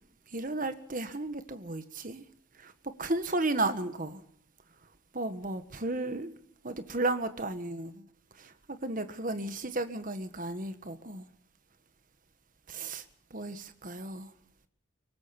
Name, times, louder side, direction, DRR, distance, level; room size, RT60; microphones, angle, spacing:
voice 1, 0.3-2.2 2.6-2.7 3.0-4.2 5.1-6.3 6.6-8.0 8.4-11.2 12.7-13.0 13.3-14.3, right 2 dB, 40° right, 1.6 m, -34 dB
23.5 x 19.5 x 6.0 m
head